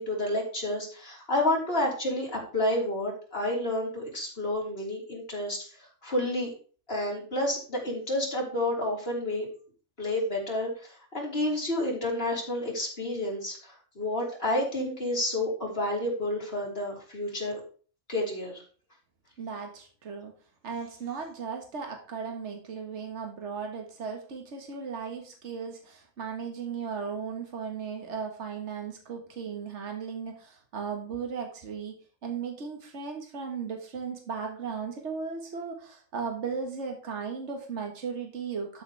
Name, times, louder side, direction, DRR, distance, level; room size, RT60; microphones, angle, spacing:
voice 1, 0.0-5.7 6.0-6.5 6.9-9.5 10.0-17.6 18.1-18.6, left 1 dB, 50° left, -2 dB, 3.4 m, -30 dB
voice 2, 19.4-20.3 20.6-38.8, right 6 dB, 70° right, 3 dB, 1.8 m, -36 dB
12.5 x 6.6 x 3.4 m, 0.41 s
omnidirectional pair, 1.3 m